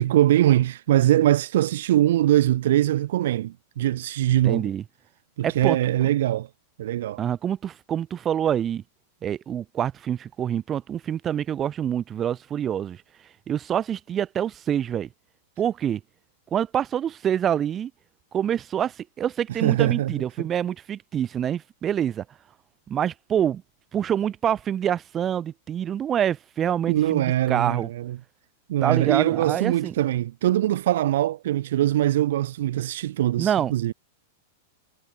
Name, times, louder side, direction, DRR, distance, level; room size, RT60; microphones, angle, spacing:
voice 1, 0.0-4.7 5.4-6.5 6.8-7.2 19.6-20.1 20.4-20.5 26.9-28.2 28.7-33.9, right 13 dB, 60° right, 1.4 m, -22 dB
voice 2, 4.4-4.8 5.4-5.8 7.2-8.8 9.2-13.0 13.5-15.1 15.6-16.0 16.5-17.9 18.3-22.2 22.9-23.6 23.9-27.9 28.8-29.9 33.4-33.7, right 9 dB, 25° right, 3.7 m, -26 dB
figure-of-eight pair, 100°, 0 cm